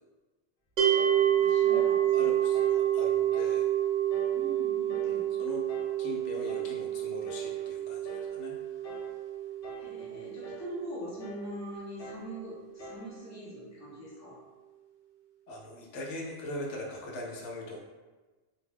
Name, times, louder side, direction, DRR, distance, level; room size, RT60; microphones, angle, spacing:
voice 1, 0.8-2.5 4.3-5.3 9.8-14.4, equal, 20° left, -7 dB, 0.6 m, -43 dB
sound 1, 0.8-11.9, right 11 dB, 65° right, 0.9 m, -29 dB
sound 2, 0.9-1.2 1.7-2.0 2.5-2.8 3.3-3.6 4.1-4.4 4.9-5.2 5.7-6.0 6.5-6.8 7.3-7.6 8.1-8.4 8.8-9.2 9.6-10.0 10.4-10.7 11.2-11.5 12.0-12.3 12.8-13.1, left 1 dB, 60° left, 0.7 m, -45 dB
voice 2, 1.4-1.8 2.1-3.7 5.0-5.6 6.0-8.6 15.5-17.8, left 2 dB, 90° left, -2 dB, 0.9 m, -41 dB
2.5 x 2.2 x 3.3 m, 1.2 s
omnidirectional pair, 1.2 m